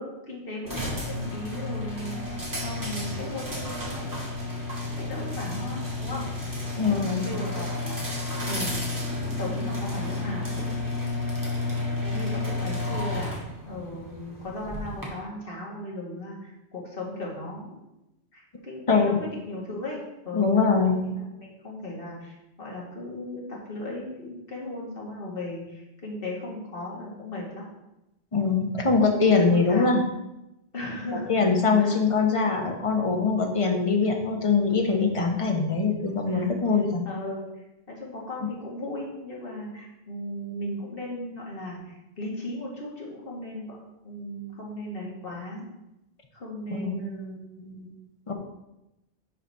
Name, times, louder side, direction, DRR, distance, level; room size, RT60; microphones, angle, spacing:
voice 1, 0.0-2.2 2.6-4.1 4.8-6.3 6.8-8.2 8.5-8.8 9.3-11.2 11.8-17.8 18.3-20.6 20.9-27.7 29.2-30.0 30.7-31.5 31.8-32.0 36.3-36.5 37.1-37.5 37.9-43.8 44.0-45.6 46.3-47.9, left 1 dB, 50° left, -3 dB, 2.2 m, -37 dB
sound 1, 0.7-15.1, left 2 dB, 15° right, 1.8 m, -31 dB
voice 2, 6.8-7.3 18.9-19.2 20.3-21.0 28.3-30.0 31.3-37.0 38.4-38.5 46.7-46.9 48.3-48.4, left 4 dB, 30° left, 3 dB, 1.0 m, -23 dB
11.0 x 4.1 x 4.2 m, 0.92 s
omnidirectional pair, 1.2 m